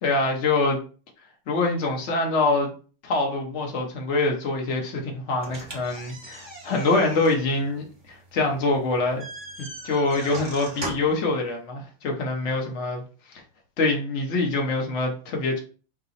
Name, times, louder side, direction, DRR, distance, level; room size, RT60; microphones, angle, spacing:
voice 1, 0.0-0.8 1.5-2.7 3.0-9.3 9.6-13.0 13.3-13.4 13.8-15.6, left 2 dB, 70° left, 1 dB, 0.6 m, -25 dB
sound 1, 5.4-11.2, right 2 dB, 25° right, 0.5 m, -39 dB
5.3 x 2.0 x 4.0 m, 0.38 s
omnidirectional pair, 2.4 m